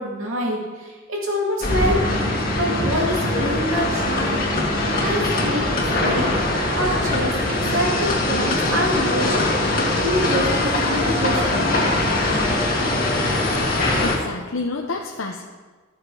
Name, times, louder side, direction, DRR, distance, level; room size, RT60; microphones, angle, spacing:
voice 1, 0.0-5.7 6.0-9.7 10.0-11.8, equal, 80° right, -2 dB, 2.4 m, -26 dB
sound 1, 1.6-14.2, left 2 dB, 45° left, 1.9 m, -22 dB
voice 2, 13.7-15.4, left 3 dB, 80° left, 1 dB, 0.8 m, -29 dB
13.5 x 6.6 x 4.8 m, 1.4 s
head